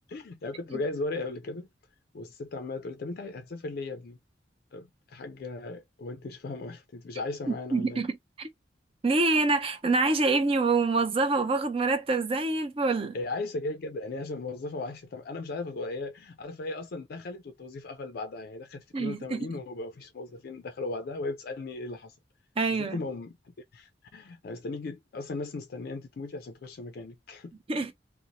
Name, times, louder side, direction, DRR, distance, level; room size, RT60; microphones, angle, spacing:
voice 1, 0.1-1.7 2.1-4.2 4.7-8.0 13.1-22.2 22.7-27.5, left 3 dB, 55° left, 0.4 m, -37 dB
voice 2, 7.7-8.5 9.0-13.2 18.9-19.5 22.6-23.0 27.7-27.9, right 3 dB, 30° right, 0.5 m, -26 dB
2.6 x 2.0 x 2.8 m
head